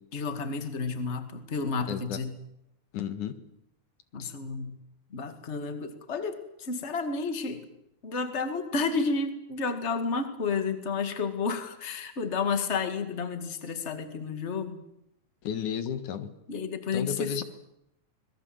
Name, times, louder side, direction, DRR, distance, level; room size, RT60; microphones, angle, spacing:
voice 1, 0.1-2.4 4.1-4.8 5.1-7.6 8.0-14.8 16.5-17.4, left 4 dB, 25° left, 8 dB, 2.0 m, -31 dB
voice 2, 1.9-2.2 2.9-3.4 4.2-4.3 15.4-16.3 16.9-17.4, left 8 dB, 85° left, 10 dB, 3.0 m, -32 dB
26.0 x 21.0 x 7.9 m, 0.83 s
omnidirectional pair, 3.5 m